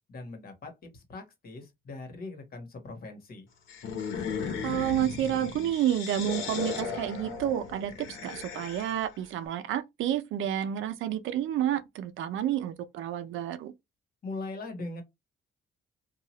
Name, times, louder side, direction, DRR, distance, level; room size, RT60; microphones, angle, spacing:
voice 1, 0.1-3.5 14.2-15.0, left 2 dB, 50° left, 1.3 m, -40 dB
sound 1, 3.7-9.2, left 6 dB, 85° left, 0.9 m, -36 dB
voice 2, 4.6-13.7, right 11 dB, 80° right, 0.5 m, -30 dB
2.7 x 2.4 x 3.0 m
cardioid pair, 90°, 20 cm